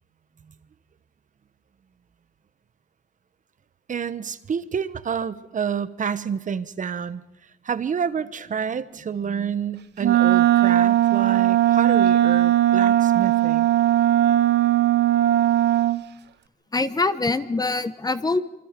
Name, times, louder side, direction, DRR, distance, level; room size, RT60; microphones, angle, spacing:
voice 1, 3.9-7.2 7.6-13.7, right 7 dB, 40° right, 14 dB, 1.1 m, -29 dB
Wind instrument woodwind instrument, 10.0-16.0, right 13 dB, 65° right, 0.9 m, -18 dB
voice 2, 16.7-18.4, left 3 dB, 20° left, 13 dB, 1.1 m, -24 dB
26.5 x 24.5 x 5.2 m, 0.91 s
cardioid pair, 105°, 19 cm